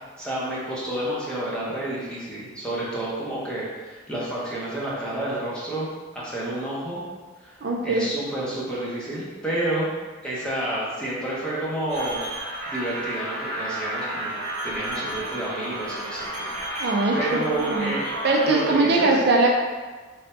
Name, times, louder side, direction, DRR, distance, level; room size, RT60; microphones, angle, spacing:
voice 1, 0.2-5.9 6.1-7.0 7.4-7.5 7.8-9.9 10.2-12.2 12.7-18.0 18.4-19.1, right 1 dB, 5° left, -8 dB, 0.9 m, -30 dB
voice 2, 7.6-8.1 16.8-18.0 18.2-19.5, right 2 dB, 55° right, 0 dB, 0.4 m, -21 dB
sound 1, 11.9-18.7, right 1 dB, 35° right, 0.9 m, -32 dB
3.3 x 2.7 x 4.3 m, 1.4 s
head